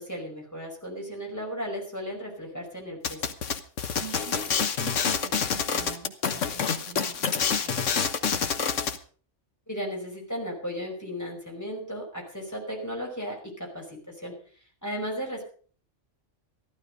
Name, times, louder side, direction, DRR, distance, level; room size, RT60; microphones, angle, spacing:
voice 1, 0.0-3.3 9.7-14.3 14.8-15.4, equal, 15° left, 0 dB, 5.1 m, -35 dB
sound 1, 3.0-9.0, left 6 dB, 85° left, 1.5 m, -27 dB
voice 2, 4.0-4.5 4.8-7.9, right 8 dB, 65° right, 8 dB, 2.1 m, -45 dB
14.5 x 12.5 x 5.2 m, 0.43 s
omnidirectional pair, 1.2 m